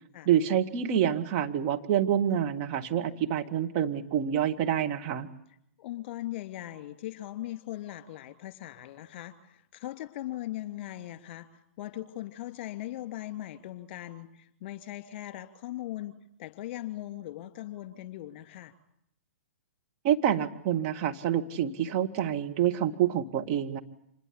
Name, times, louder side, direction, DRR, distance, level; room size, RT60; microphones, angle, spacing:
voice 1, 0.3-5.3 20.0-23.8, right 10 dB, 40° right, 5 dB, 2.0 m, -27 dB
voice 2, 5.8-16.1 16.4-18.7, left 14 dB, 40° left, 11 dB, 2.9 m, -39 dB
26.5 x 21.0 x 8.4 m, 0.74 s
figure-of-eight pair, 110°, 8 cm